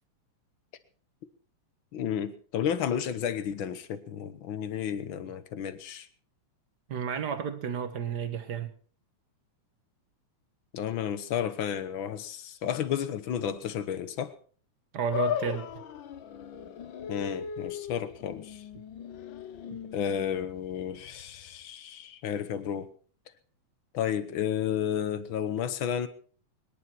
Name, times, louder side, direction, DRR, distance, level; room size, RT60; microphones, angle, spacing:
voice 1, 1.9-6.1 10.7-14.3 17.1-18.6 19.9-22.9 23.9-26.1, left 9 dB, 60° left, 1.3 m, -32 dB
voice 2, 6.9-8.7 14.9-15.8, right 7 dB, 50° right, 1.3 m, -32 dB
sound 1, 15.1-21.6, left 9 dB, 85° left, 1.0 m, -37 dB
24.0 x 11.0 x 4.5 m
omnidirectional pair, 3.5 m